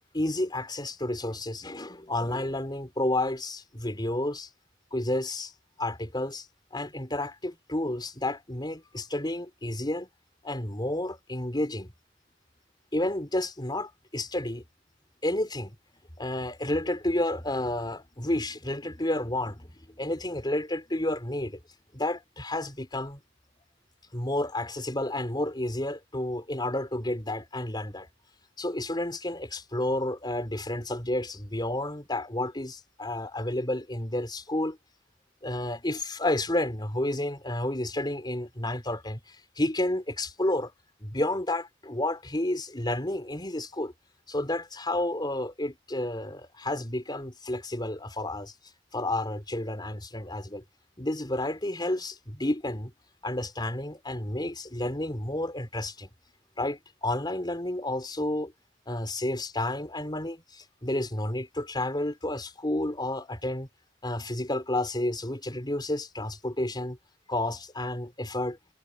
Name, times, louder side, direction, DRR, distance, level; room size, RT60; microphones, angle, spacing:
voice 1, 0.1-4.5 4.9-5.5 5.8-6.5 6.7-10.1 10.4-11.9 12.9-14.6 15.2-15.8 16.2-21.6 21.9-23.2 24.1-28.1 28.6-34.8 35.4-40.7 41.0-43.9 44.3-48.5 48.9-50.6 51.0-52.9 53.2-56.1 56.6-58.5 58.9-63.7 64.0-67.0 67.3-68.6, left 1 dB, 25° left, 4.2 m, -31 dB
head